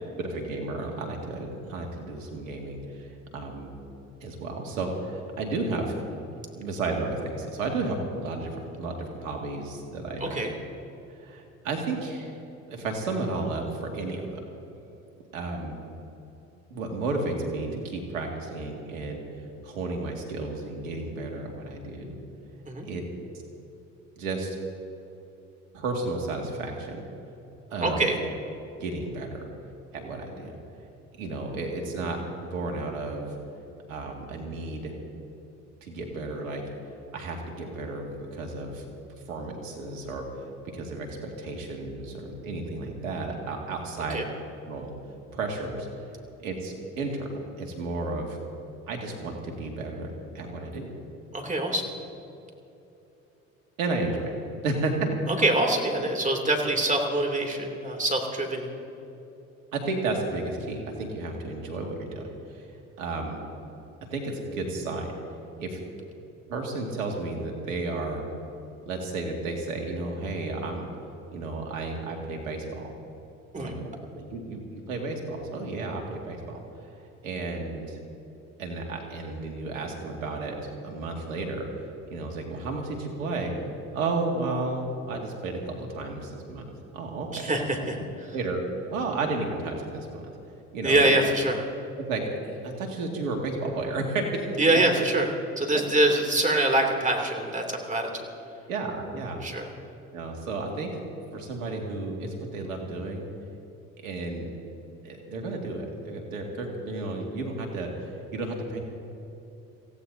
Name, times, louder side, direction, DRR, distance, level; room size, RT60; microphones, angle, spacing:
voice 1, 0.2-3.7 4.2-5.9 6.5-10.4 11.2-12.3 12.7-14.4 15.3-15.8 16.7-19.2 19.6-22.2 22.8-23.0 24.2-24.6 25.7-27.0 27.7-28.1 28.8-29.4 29.9-30.5 31.2-33.3 33.9-35.0 35.8-36.6 37.1-38.8 39.3-40.2 40.7-44.2 44.7-44.9 45.3-45.9 46.4-48.4 48.9-50.9 53.8-54.4 54.6-55.0 59.7-62.7 63.0-63.4 64.0-65.1 65.6-65.8 66.5-68.2 68.9-70.9 71.3-72.9 73.6-73.9 74.2-76.6 77.2-78.0 78.6-81.7 82.1-83.5 83.9-87.5 88.3-88.6 88.9-90.2 90.7-91.2 92.1-94.8 95.7-95.8 98.7-99.4 100.1-100.9 101.3-103.3 104.0-104.5 105.0-108.8, right 3 dB, 90° right, 1 dB, 2.2 m, -32 dB
voice 2, 10.2-10.5 22.6-22.9 27.8-28.2 44.1-44.3 51.3-51.9 55.3-58.7 73.5-73.8 87.3-88.0 90.8-91.6 94.6-98.3 99.4-99.7, right 1 dB, 20° right, 2 dB, 2.7 m, -24 dB
24.5 x 16.0 x 2.7 m, 2.9 s
hypercardioid pair, 65°, 38 cm